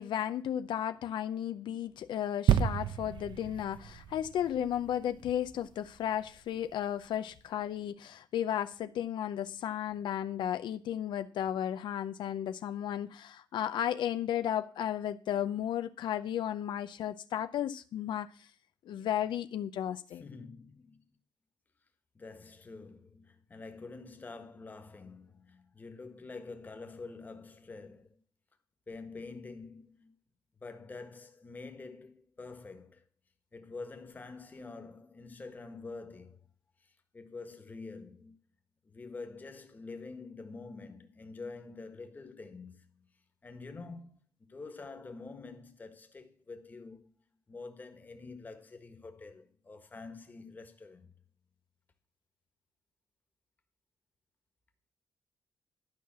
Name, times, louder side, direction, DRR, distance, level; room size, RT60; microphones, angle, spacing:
voice 1, 0.0-18.5 18.9-20.2, left 10 dB, 80° left, 0.6 m, -34 dB
sound 1, 2.5-6.1 6.7-6.8, right 9 dB, 75° right, 0.7 m, -31 dB
voice 2, 20.1-21.0 22.1-28.2 28.9-30.2 30.6-33.0 33.5-36.5 36.8-38.4 38.8-43.1 43.4-47.1 47.5-51.1, left 3 dB, 20° left, 1.4 m, -47 dB
12.0 x 5.7 x 7.3 m
wide cardioid pair, 155°, 8 cm